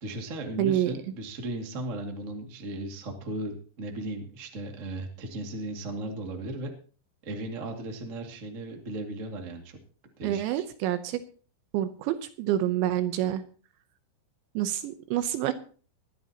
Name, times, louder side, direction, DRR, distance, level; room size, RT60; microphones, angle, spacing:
voice 1, 0.0-6.7 7.2-9.8 10.2-10.6, right 1 dB, 60° right, 3 dB, 0.7 m, -36 dB
voice 2, 0.6-1.0 10.2-11.2 11.7-13.4 14.6-15.5, right 12 dB, 80° right, 10 dB, 2.8 m, -27 dB
20.5 x 13.0 x 2.9 m, 0.40 s
omnidirectional pair, 5.8 m